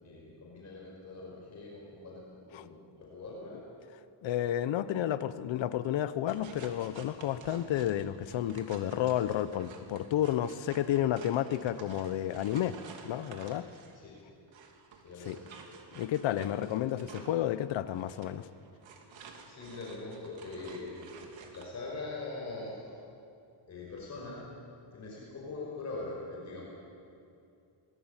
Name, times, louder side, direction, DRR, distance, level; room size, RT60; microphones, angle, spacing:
voice 1, 0.0-3.6 13.9-14.1 15.0-15.5 16.9-17.1 19.1-21.0 21.5-22.8 23.7-24.4 24.9-26.6, left 3 dB, 35° left, -3 dB, 5.4 m, -42 dB
voice 2, 4.2-12.8 13.0-13.7 15.3-15.4 15.9-18.5, left 11 dB, 70° left, 13 dB, 1.1 m, -31 dB
sound 1, 6.3-14.0 14.5-21.7, right 5 dB, 70° right, 3.1 m, -52 dB
25.0 x 21.0 x 9.1 m, 2.6 s
cardioid pair, 180°, 47 cm